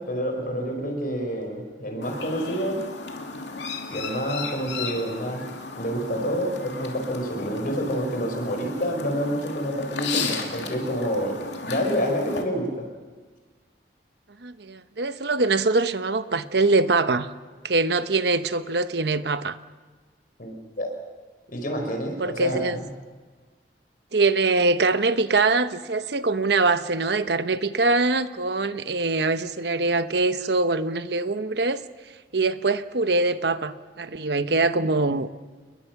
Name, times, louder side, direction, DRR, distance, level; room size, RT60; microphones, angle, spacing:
voice 1, 0.0-2.8 3.9-5.4 5.8-12.8 20.4-20.9 21.5-22.9, equal, 50° left, 4 dB, 4.7 m, -28 dB
Chirp tweet, 2.0-12.4, left 4 dB, 75° left, 2.7 m, -35 dB
voice 2, 14.4-17.3 17.6-19.6 22.2-22.8 24.1-31.8 32.3-35.3, right 3 dB, 65° right, 11 dB, 1.0 m, -23 dB
29.5 x 21.5 x 6.0 m, 1.4 s
head